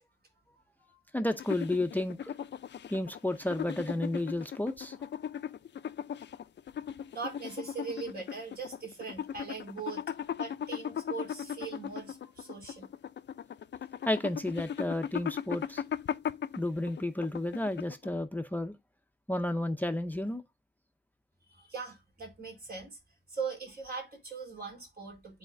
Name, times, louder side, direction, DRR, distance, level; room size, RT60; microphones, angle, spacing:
voice 1, 1.1-2.3 2.9-5.0 14.0-15.8 16.6-18.7 19.3-20.4, left 1 dB, 10° left, 0.6 m, -32 dB
sound 1, 1.3-18.2, left 8 dB, 90° left, 0.5 m, -38 dB
voice 2, 7.1-10.0 10.3-12.9 21.5-23.0 23.3-25.4, right 5 dB, 65° right, 4.1 m, -40 dB
11.5 x 4.2 x 2.6 m
wide cardioid pair, 145°, 18 cm